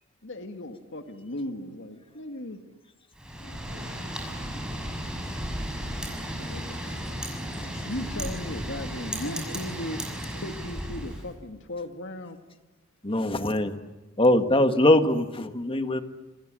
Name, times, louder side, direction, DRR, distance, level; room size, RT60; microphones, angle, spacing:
voice 1, 0.2-2.6 7.9-10.0 10.4-12.4, left 1 dB, 60° left, 6 dB, 2.2 m, -36 dB
Wind, 3.1-11.3, equal, 5° right, 6.1 m, -34 dB
voice 2, 3.3-3.9 6.4-7.4 7.7-8.2 9.2-9.6, left 3 dB, 90° left, 7 dB, 6.5 m, -47 dB
voice 3, 13.0-13.7 14.2-16.0, left 1 dB, 25° left, 8 dB, 1.7 m, -22 dB
28.0 x 27.0 x 7.7 m, 1.1 s
head